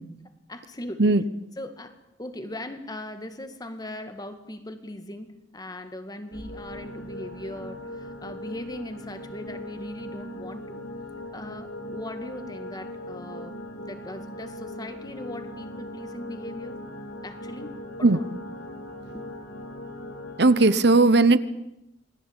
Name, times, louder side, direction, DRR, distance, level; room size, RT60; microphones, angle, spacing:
voice 1, 0.5-1.1 1.6-10.8 11.3-16.8 17.2-17.7 18.0-18.2 19.1-19.5, left 1 dB, 20° left, 9 dB, 2.1 m, -39 dB
sound 1, 6.3-20.8, left 1 dB, 85° left, 4.7 m, -39 dB
voice 2, 20.4-21.4, right 3 dB, 60° right, 15 dB, 1.0 m, -17 dB
27.5 x 20.0 x 9.0 m, 0.89 s
head